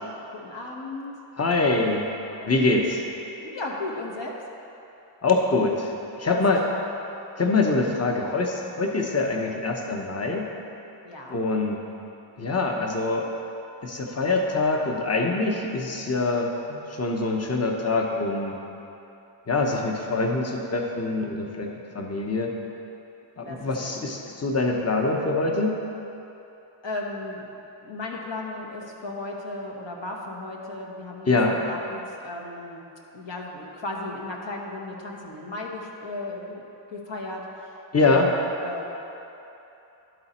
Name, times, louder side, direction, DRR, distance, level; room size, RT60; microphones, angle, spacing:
voice 1, 0.3-1.1 2.3-2.7 3.4-4.3 6.3-6.4 6.8-6.9 11.0-11.4 23.4-23.9 26.8-32.8 33.1-36.6 36.9-37.7 38.0-38.9, left 2 dB, 60° left, -1 dB, 1.3 m, -35 dB
voice 2, 1.4-2.1 2.4-3.0 5.2-5.9 6.2-6.6 7.4-10.5 11.3-11.8 12.4-13.3 13.8-18.6 19.5-22.5 23.4-25.8 31.3-31.6 37.9-38.3, left 3 dB, 30° left, 1 dB, 1.0 m, -24 dB
11.5 x 4.1 x 4.3 m, 2.9 s
cardioid pair, 45°, 49 cm